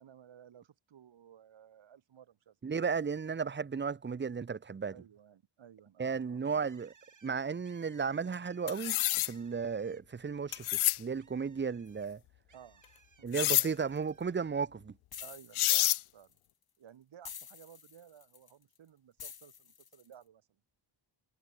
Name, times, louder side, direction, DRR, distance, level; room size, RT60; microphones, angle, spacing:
voice 1, 0.0-2.6 4.9-6.6 12.5-12.8 13.2-13.7 14.3-14.4 15.2-16.4 16.8-20.6, right 9 dB, 70° right, 5.5 m, -56 dB
voice 2, 2.6-4.9 6.0-6.9 7.2-9.0 9.2-12.2 13.2-14.9, right 5 dB, 25° right, 1.0 m, -34 dB
Bird, 6.4-10.3 10.6-13.3 13.7-14.4, right 6 dB, 40° right, 6.5 m, -64 dB
sound 1, 8.7-9.3 10.5-11.0 13.3-13.7 15.2-15.3 15.5-16.0, left 17 dB, 85° left, 0.6 m, -28 dB
sound 2, 13.3-14.2 15.1-16.5 17.2-18.8 19.2-20.1, left 7 dB, 50° left, 3.9 m, -49 dB
wide cardioid pair, 175°, 48 cm